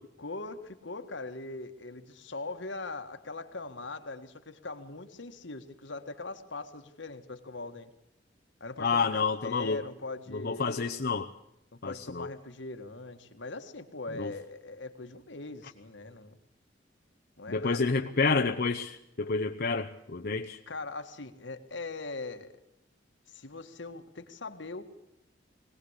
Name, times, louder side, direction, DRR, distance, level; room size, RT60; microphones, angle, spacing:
voice 1, 0.2-7.9 8.6-10.9 11.8-16.4 17.4-17.9 20.7-22.6 23.3-24.8, left 3 dB, 80° left, 7 dB, 1.8 m, -41 dB
voice 2, 8.8-9.8 10.3-11.3 11.8-12.3 14.2-14.3 17.5-20.6, left 4 dB, 55° left, 4 dB, 0.8 m, -29 dB
21.5 x 18.0 x 8.2 m, 0.84 s
head